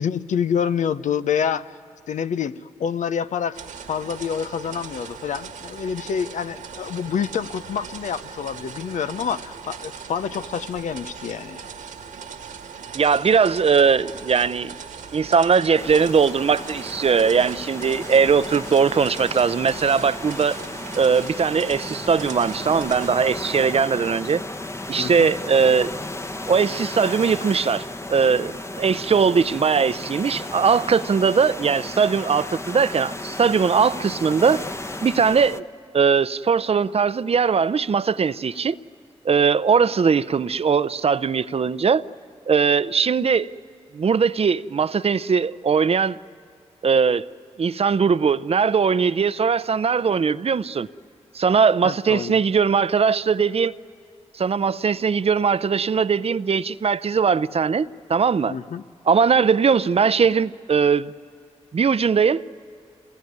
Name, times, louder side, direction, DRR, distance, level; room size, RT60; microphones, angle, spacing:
voice 1, 0.0-1.7 2.1-3.6 3.9-11.6 25.0-25.3 51.8-52.3 58.4-58.8, left 7 dB, 75° left, 0.7 m, -27 dB
sound 1, 3.5-23.1, right 6 dB, 85° right, 1.7 m, -39 dB
voice 2, 12.9-14.7 15.1-20.6 21.0-24.4 24.9-25.9 26.5-34.6 35.0-35.6 35.9-38.8 39.2-42.1 42.5-43.5 43.9-46.2 46.8-47.2 47.6-50.9 51.3-53.7 54.3-58.6 59.1-61.1 61.7-62.4, right 6 dB, 50° right, 0.6 m, -20 dB
sound 2, 15.8-35.6, left 2 dB, 20° left, 1.1 m, -34 dB
27.0 x 20.5 x 9.5 m
supercardioid pair, 40°, 13 cm